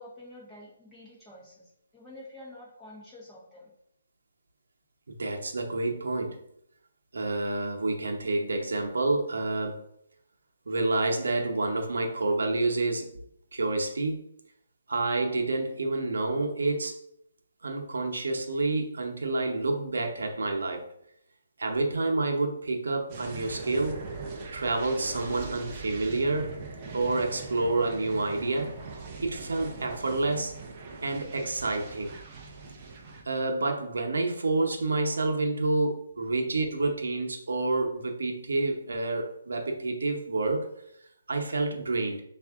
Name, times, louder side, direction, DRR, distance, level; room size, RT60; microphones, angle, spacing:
voice 1, 0.0-3.7 36.2-36.3, left 1 dB, 5° left, -8 dB, 1.3 m, -48 dB
voice 2, 5.1-6.4 7.1-9.8 10.7-13.1 13.5-14.2 14.9-17.0 17.6-20.9 21.6-24.0 24.5-26.6 26.9-28.7 29.2-30.6 31.0-32.1 33.2-40.7 41.3-42.2, right 2 dB, 90° right, 2 dB, 0.8 m, -28 dB
sound 1, 23.1-33.2, right 4 dB, 25° right, 0.6 m, -41 dB
4.4 x 2.6 x 3.6 m, 0.72 s
hypercardioid pair, 165°, 0 cm